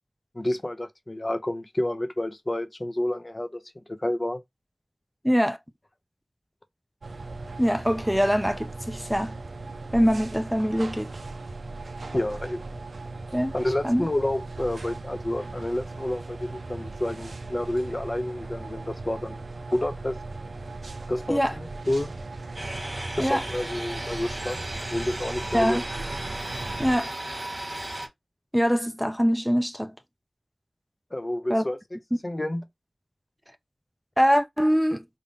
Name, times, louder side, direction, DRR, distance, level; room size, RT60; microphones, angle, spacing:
voice 1, 0.3-4.4 12.1-12.6 13.5-19.4 19.7-20.2 21.1-22.1 23.2-24.6 24.9-25.8 31.1-31.8 32.2-32.6, left 1 dB, 40° left, 0.7 m, -29 dB
voice 2, 5.2-5.6 7.6-9.3 9.9-11.1 13.3-13.5 13.8-14.1 21.3-21.5 23.2-23.4 25.5-25.8 26.8-27.1 28.5-29.9 31.5-31.6 34.2-35.0, equal, 5° right, 0.5 m, -23 dB
sound 1, 7.0-27.0, right 3 dB, 90° right, 0.3 m, -38 dB
sound 2, 22.5-28.1, right 1 dB, 55° right, 1.4 m, -35 dB
3.5 x 2.1 x 4.0 m
wide cardioid pair, 40°, 0 cm